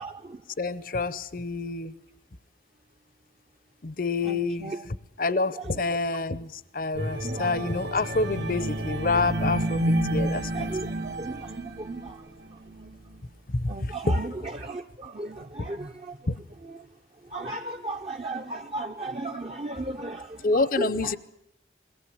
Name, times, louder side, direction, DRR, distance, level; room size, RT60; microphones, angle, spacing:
voice 1, 0.0-0.4 4.2-4.8 5.3-6.0 7.2-7.5 10.2-12.3 13.7-16.2 16.6-16.9 17.3-21.2, right 2 dB, 35° right, 3 dB, 0.8 m, -36 dB
voice 2, 0.6-1.9 3.8-10.7 13.5-14.0 16.3-16.4 20.4-21.2, left 3 dB, 50° left, 17 dB, 0.7 m, -28 dB
sound 1, 6.9-12.2 12.7-12.9, right 1 dB, 75° right, 2.2 m, -29 dB
22.0 x 18.5 x 8.7 m, 0.85 s
head